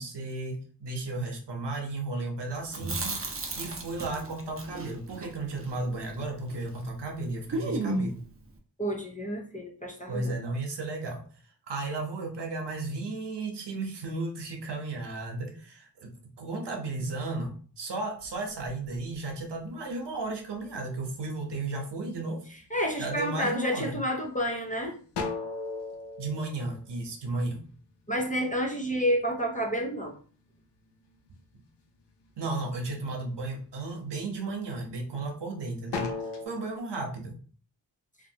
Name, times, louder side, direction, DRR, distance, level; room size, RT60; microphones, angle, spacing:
voice 1, 0.0-3.2 3.5-8.2 10.1-11.2 11.7-16.1 16.4-22.4 23.0-24.0 26.2-27.6 32.4-36.1 36.4-37.4, right 2 dB, 70° right, 2 dB, 0.9 m, -34 dB
Chewing mastication, 2.6-6.8 7.1-7.2 7.5-8.3, right 2 dB, 30° right, 0.6 m, -34 dB
voice 2, 8.8-10.4 22.7-25.0 28.1-30.1, equal, 20° left, 1 dB, 0.4 m, -29 dB
sound 1, 18.2-20.1 20.6-21.3 21.8-22.4 22.8-23.7 24.2-24.3 24.6-27.5 27.9-30.2 30.5-31.6 32.0-32.6 33.1-33.3 33.8-35.4 35.8-36.5, left 4 dB, 70° left, 0.6 m, -38 dB
3.2 x 2.5 x 2.7 m, 0.42 s
wide cardioid pair, 160°, 43 cm